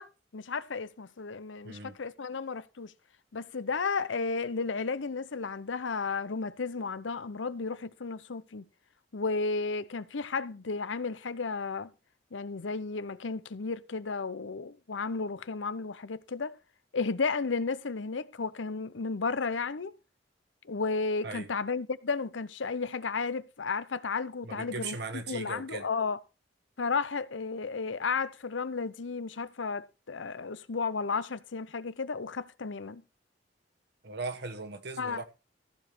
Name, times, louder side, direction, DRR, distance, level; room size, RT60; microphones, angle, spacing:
voice 1, 0.0-2.9 3.3-8.6 9.1-11.9 12.3-16.6 16.9-19.9 20.6-25.0 25.3-26.2 26.8-33.0 35.0-35.2, left 4 dB, 85° left, 0.8 m, -33 dB
voice 2, 1.6-2.0 21.2-21.5 24.4-25.9 34.0-35.2, right 3 dB, 60° right, 1.4 m, -38 dB
14.5 x 5.1 x 6.1 m
head